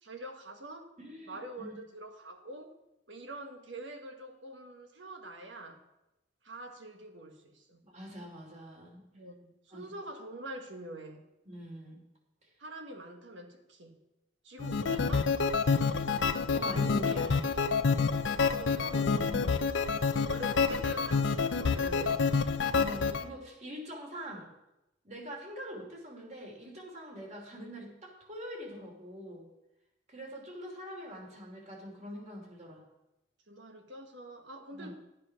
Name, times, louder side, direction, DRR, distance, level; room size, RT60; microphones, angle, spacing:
voice 1, 0.0-0.8 1.3-2.7 3.1-5.8 6.4-7.8 9.1-11.2 12.6-14.0 14.4-15.3 18.4-19.6 20.3-22.2 33.5-35.0, right 1 dB, 80° right, 5 dB, 1.6 m, -45 dB
voice 2, 1.0-1.7 7.8-9.0 9.7-9.8 11.4-12.0 12.4-12.5 16.5-17.6 19.2-19.6 22.7-24.5 25.0-29.5 30.1-32.8 34.7-34.9, equal, 40° right, -1 dB, 3.2 m, -44 dB
sound 1, 14.6-23.2, left 5 dB, 80° left, 0.6 m, -28 dB
11.5 x 8.4 x 5.9 m, 0.93 s
head